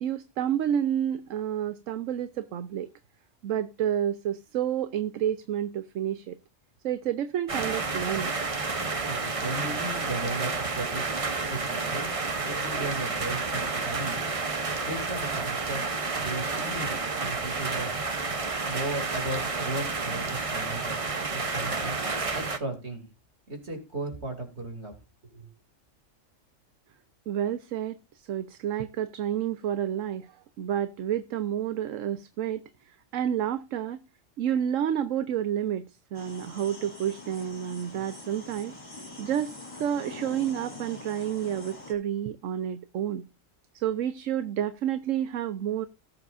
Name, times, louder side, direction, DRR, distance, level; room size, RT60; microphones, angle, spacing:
voice 1, 0.0-2.9 3.4-6.4 6.8-8.3 27.3-34.0 34.4-35.9 36.1-38.8 39.2-43.2 43.7-45.9, right 10 dB, 80° right, 1.1 m, -30 dB
sound 1, 7.5-22.6, right 4 dB, 30° right, 0.9 m, -30 dB
voice 2, 9.0-11.1 11.5-12.2 12.4-14.3 14.8-15.8 16.2-17.9 18.4-21.0 21.3-22.0 22.3-23.1 23.5-24.9 25.2-25.5, right 2 dB, 55° right, 3.2 m, -36 dB
sound 2, 36.1-41.9, left 2 dB, 25° left, 4.1 m, -44 dB
18.5 x 7.6 x 2.6 m
omnidirectional pair, 1.3 m